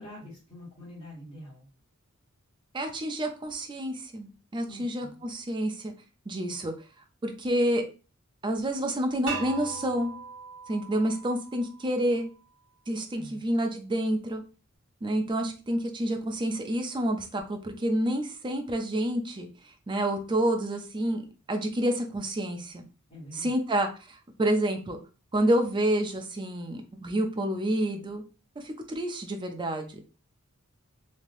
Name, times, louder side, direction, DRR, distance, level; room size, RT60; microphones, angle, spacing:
voice 1, 0.0-1.6 4.6-5.2 13.1-13.4 23.1-23.5, left 1 dB, 35° left, -9 dB, 1.6 m, -45 dB
voice 2, 2.7-5.9 6.3-6.7 7.2-7.8 8.4-10.1 10.7-12.3 12.9-14.4 15.0-19.5 19.9-21.2 21.5-22.8 23.3-25.0 25.3-28.2 28.6-30.0, right 1 dB, 20° right, 4 dB, 0.5 m, -28 dB
sound 1, 9.3-12.2, right 4 dB, 60° right, 1.3 m, -39 dB
3.3 x 2.8 x 2.5 m, 0.34 s
head